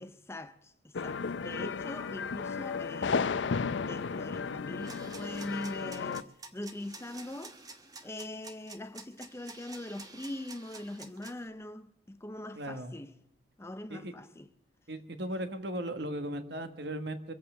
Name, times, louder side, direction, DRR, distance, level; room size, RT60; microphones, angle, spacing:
voice 1, 0.0-7.6 8.0-13.2 13.6-14.5, left 1 dB, 15° left, 0.5 m, -42 dB
sound 1, 0.9-6.2, left 5 dB, 70° left, 0.5 m, -34 dB
sound 2, 4.8-11.5, right 3 dB, 20° right, 1.1 m, -49 dB
voice 2, 12.5-12.9 13.9-14.1 14.9-17.3, right 1 dB, 60° right, 1.4 m, -37 dB
23.5 x 8.4 x 6.8 m
head